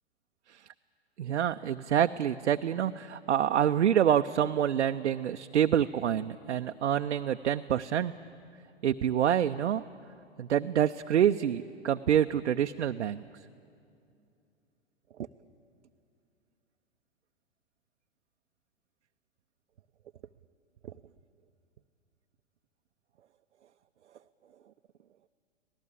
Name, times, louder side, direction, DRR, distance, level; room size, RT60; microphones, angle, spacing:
voice 1, 1.2-8.1 8.8-9.8 10.4-13.2, right 9 dB, 75° right, 7 dB, 0.6 m, -27 dB
25.0 x 18.0 x 8.5 m, 2.5 s
figure-of-eight pair, 110°, 35 cm